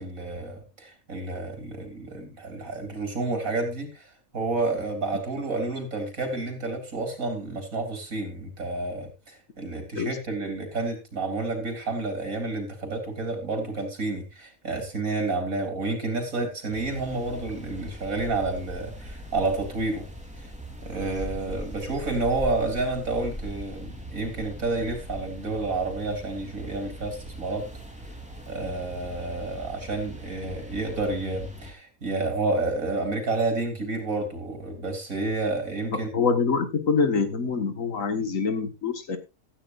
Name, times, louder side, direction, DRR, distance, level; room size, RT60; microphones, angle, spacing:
voice 1, 0.0-20.1 20.4-20.5 20.8-27.6 28.5-36.3, right 3 dB, 85° right, 5 dB, 4.0 m, -30 dB
sound 1, 16.7-31.7, equal, 5° right, 3.4 m, -40 dB
voice 2, 36.1-39.2, left 5 dB, 75° left, 8 dB, 2.0 m, -25 dB
16.0 x 13.0 x 2.6 m, 0.26 s
omnidirectional pair, 1.4 m